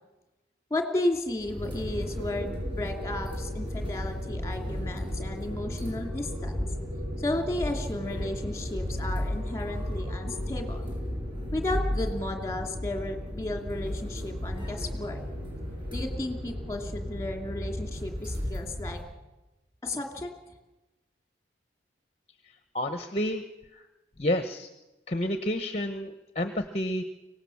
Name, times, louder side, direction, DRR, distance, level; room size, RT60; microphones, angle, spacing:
voice 1, 0.7-6.6 7.2-10.9 11.5-15.2 15.9-19.0 19.8-20.3, left 1 dB, 15° left, 4 dB, 2.7 m, -33 dB
sound 1, 1.4-19.0, equal, 25° right, 7.2 m, -34 dB
voice 2, 22.7-23.4 23.7-23.9 24.2-24.7 25.1-27.0, left 1 dB, 35° left, 8 dB, 1.0 m, -30 dB
24.0 x 18.0 x 7.1 m, 1.0 s
head